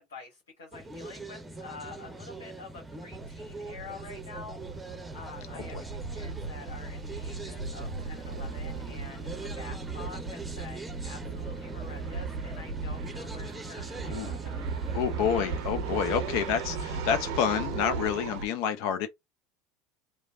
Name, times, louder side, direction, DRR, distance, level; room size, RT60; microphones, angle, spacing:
voice 1, 0.0-14.3, left 3 dB, 80° left, 1.3 m, -47 dB
sound 1, 0.7-18.4, right 2 dB, 10° right, 0.7 m, -42 dB
sound 2, 1.9-2.1 2.3-2.4 2.8-18.5, right 5 dB, 70° right, 0.6 m, -37 dB
voice 2, 14.1-14.4 14.9-19.1, left 8 dB, 60° left, 0.4 m, -29 dB
3.1 x 2.1 x 2.5 m
hypercardioid pair, 75°, 0 cm